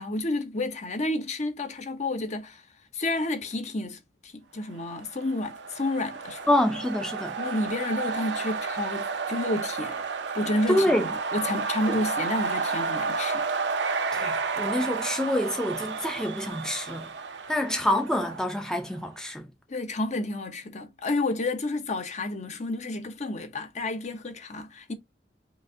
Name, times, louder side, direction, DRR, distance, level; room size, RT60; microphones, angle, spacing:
voice 1, 0.0-2.6 2.9-6.4 7.4-10.0 10.3-13.5 19.7-24.9, left 2 dB, 40° left, 0.9 m, -30 dB
sound 1, 5.0-18.8, right 4 dB, 85° right, 0.7 m, -31 dB
voice 2, 6.5-7.4 10.7-11.1 11.9-12.0 14.1-17.1 17.5-19.5, left 1 dB, 5° left, 0.6 m, -26 dB
5.2 x 2.6 x 3.6 m
head